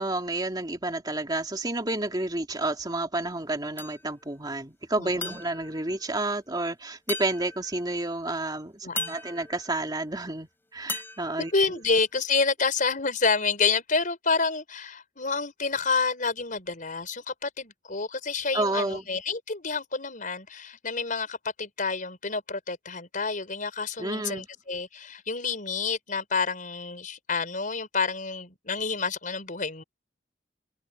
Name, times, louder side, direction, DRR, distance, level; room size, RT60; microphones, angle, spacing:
voice 1, 0.0-11.5 18.5-19.1 24.0-24.5, right 2 dB, 25° right, 2.5 m, -30 dB
sound 1, 3.8-4.4 5.2-6.6 7.1-8.1 9.0-10.4 10.9-12.3, left 2 dB, 15° left, 4.0 m, -39 dB
voice 2, 5.0-5.4 8.8-9.1 11.5-29.8, left 4 dB, 50° left, 5.4 m, -28 dB
head